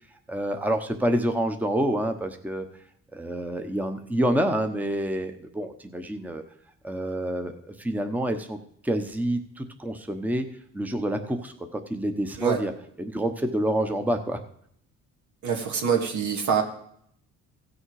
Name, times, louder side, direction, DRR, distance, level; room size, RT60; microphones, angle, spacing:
voice 1, 0.3-2.7 3.1-6.4 6.8-8.6 8.8-10.4 10.7-12.7 13.0-14.4, right 1 dB, 5° right, 6 dB, 0.9 m, -27 dB
voice 2, 15.4-16.6, right 7 dB, 75° right, 3 dB, 2.1 m, -25 dB
16.0 x 6.4 x 4.8 m, 0.69 s
cardioid pair, 90°, 30 cm